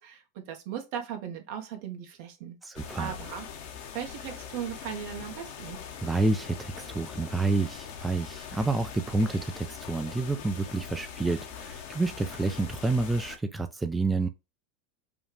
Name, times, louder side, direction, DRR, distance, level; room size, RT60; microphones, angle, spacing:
voice 1, 0.0-2.6 3.0-3.5 3.9-5.8, right 9 dB, 60° right, 1.1 m, -37 dB
voice 2, 2.6-3.2 6.0-14.3, right 3 dB, 10° right, 0.4 m, -29 dB
sound 1, 2.7-13.4, left 7 dB, 65° left, 1.1 m, -42 dB
5.1 x 2.4 x 3.2 m
hypercardioid pair, 100°, 0 cm